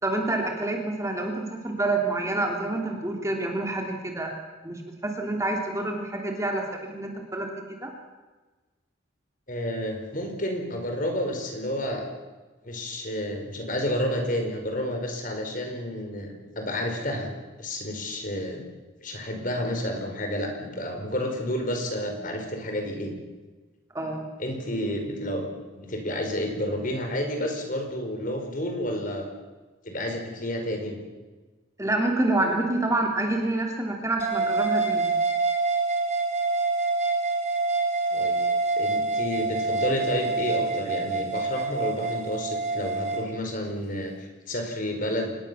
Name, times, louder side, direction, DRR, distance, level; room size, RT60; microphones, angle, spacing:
voice 1, 0.0-4.3 4.6-7.5 7.8-7.9 23.9-24.2 31.8-35.1, right 2 dB, 15° right, 2 dB, 2.9 m, -27 dB
voice 2, 9.5-12.1 12.6-17.3 17.6-18.6 19.0-23.1 24.4-25.5 25.8-29.3 29.8-31.0 38.1-38.4 38.8-45.4, equal, 40° left, 4 dB, 5.1 m, -30 dB
sound 1, 34.2-43.2, right 3 dB, 35° right, 3.3 m, -26 dB
26.5 x 21.0 x 7.1 m, 1.2 s
head